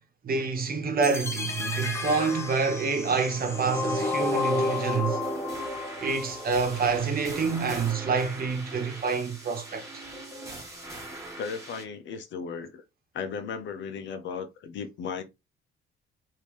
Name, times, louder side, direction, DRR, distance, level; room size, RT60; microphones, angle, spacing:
voice 1, 0.2-5.2 6.0-10.0, right 5 dB, 50° right, 1.0 m, -27 dB
sound 1, 1.0-7.0, left 2 dB, 15° left, 0.9 m, -31 dB
sound 2, 4.0-11.8, right 2 dB, 15° right, 1.8 m, -41 dB
voice 2, 11.4-12.8 13.1-15.2, left 6 dB, 70° left, 0.7 m, -36 dB
3.5 x 2.7 x 3.1 m
cardioid pair, 90°, 20 cm